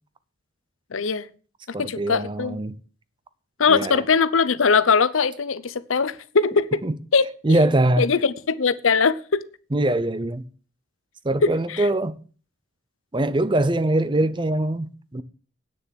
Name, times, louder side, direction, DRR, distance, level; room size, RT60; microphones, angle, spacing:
voice 1, 0.9-1.3 1.8-2.6 3.6-6.8 7.1-7.2 8.0-9.4 11.4-11.8, left 5 dB, 90° left, 0.7 m, -21 dB
voice 2, 1.7-2.8 3.7-4.0 6.8-7.0 7.4-8.1 9.7-10.4 11.2-12.2 13.1-15.2, right 1 dB, 25° right, 0.6 m, -22 dB
9.3 x 6.8 x 7.5 m
head